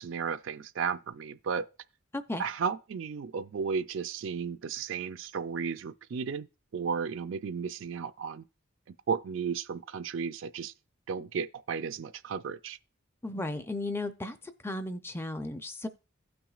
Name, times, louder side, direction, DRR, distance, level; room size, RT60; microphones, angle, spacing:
voice 1, 0.0-1.6 2.4-6.5 6.7-8.4 8.9-10.7 11.1-12.8, right 6 dB, 65° right, 0.4 m, -34 dB
voice 2, 13.2-14.4 14.6-15.9, left 2 dB, 10° left, 0.5 m, -35 dB
16.0 x 6.0 x 2.4 m
head